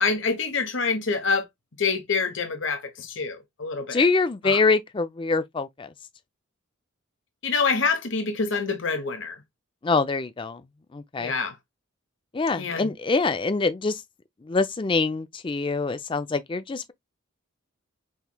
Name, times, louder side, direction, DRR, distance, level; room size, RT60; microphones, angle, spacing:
voice 1, 0.0-1.4 1.8-4.0 4.4-4.6 7.4-9.4 11.2-11.6 12.5-12.9, left 4 dB, 60° left, 1.0 m, -26 dB
voice 2, 3.9-5.9 9.8-10.6 10.9-11.3 12.3-14.0 14.4-16.9, left 3 dB, 25° left, 0.4 m, -24 dB
5.7 x 3.1 x 2.2 m
head